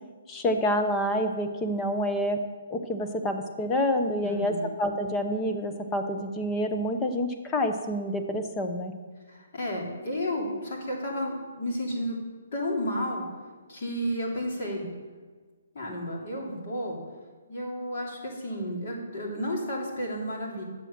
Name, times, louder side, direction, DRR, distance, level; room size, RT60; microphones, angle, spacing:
voice 1, 0.3-2.4 2.7-8.9, equal, 10° left, 5 dB, 0.7 m, -28 dB
voice 2, 4.2-4.7 9.3-12.2 12.5-13.2 13.7-14.9 15.7-17.0 17.5-20.6, equal, 35° left, -2 dB, 3.0 m, -32 dB
10.5 x 7.8 x 6.7 m, 1.4 s
hypercardioid pair, 175°, 0 cm